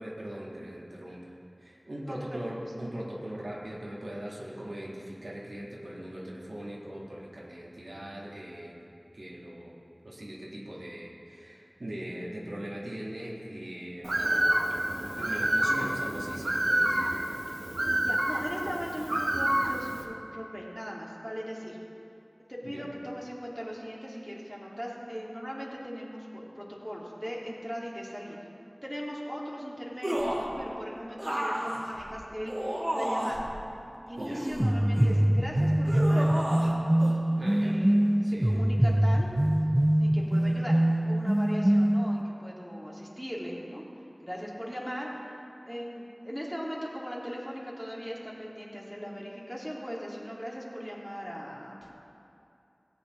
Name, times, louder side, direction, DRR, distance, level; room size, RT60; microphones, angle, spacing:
voice 1, 0.0-8.8 9.1-9.8 10.0-14.3 15.2-17.1 22.6-22.9 34.2-34.4 37.3-37.9 38.2-38.7, right 1 dB, 85° right, -4 dB, 1.5 m, -40 dB
voice 2, 2.0-2.4 18.0-21.8 22.5-28.5 28.8-33.5 34.1-36.3 37.6-38.0 38.2-39.3 40.0-40.8 41.1-43.8 44.2-45.1 45.6-51.9, equal, 5° left, -4 dB, 2.0 m, -39 dB
Bird, 14.0-20.0, right 1 dB, 70° right, 1.0 m, -28 dB
sound 1, 30.0-30.5 31.2-33.5 34.2-35.3 35.9-36.7 37.0-37.2, equal, 40° right, 1.9 m, -32 dB
sound 2, 34.6-42.2, right 1 dB, 25° right, 0.4 m, -24 dB
17.0 x 8.3 x 3.0 m, 2.7 s
wide cardioid pair, 45°, 0 cm